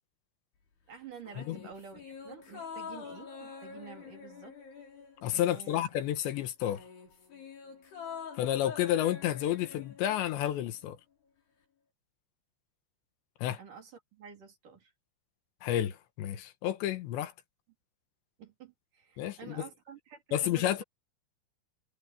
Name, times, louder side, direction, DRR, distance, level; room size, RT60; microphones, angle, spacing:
voice 1, 0.9-4.6 5.5-5.8 13.6-14.9 18.4-20.8, right 7 dB, 45° right, 4.6 m, -49 dB
sound 1, 1.2-6.0 6.3-10.6 10.9-11.0, left 6 dB, 60° left, 8.5 m, -46 dB
voice 2, 5.2-6.9 8.3-11.0 13.4-13.6 15.6-17.3 19.2-19.7 20.3-20.8, left 12 dB, 75° left, 3.4 m, -31 dB
omnidirectional pair, 5.3 m